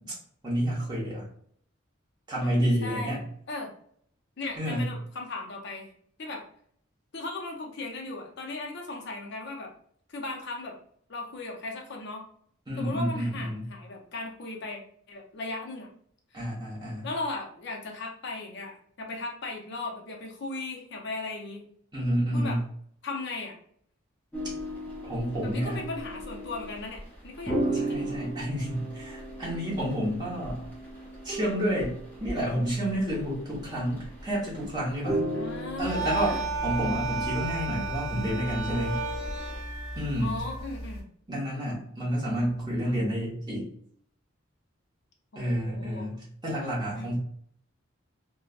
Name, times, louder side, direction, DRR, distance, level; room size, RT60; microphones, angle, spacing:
voice 1, 0.4-1.2 2.3-3.2 4.6-4.9 12.7-13.7 16.3-17.1 21.9-22.6 25.0-25.8 27.7-30.6 31.2-35.3 35.8-39.0 39.9-40.4 41.3-43.7 45.3-47.2, equal, 20° right, -6 dB, 1.1 m, -30 dB
voice 2, 2.8-3.2 3.5-3.7 4.4-5.9 6.2-6.5 7.1-9.7 10.1-10.8 11.1-12.2 12.8-14.8 15.1-15.9 16.3-16.4 17.0-21.6 22.3-22.6 23.0-23.6 25.4-28.2 35.3-36.5 40.2-41.0 45.3-46.1 46.9-47.1, left 2 dB, 55° left, 1 dB, 0.6 m, -37 dB
sound 1, 24.3-39.6, right 1 dB, 10° left, 0.6 m, -36 dB
sound 2, 35.8-41.0, right 3 dB, 55° right, 0.9 m, -33 dB
3.3 x 2.2 x 2.4 m, 0.62 s
head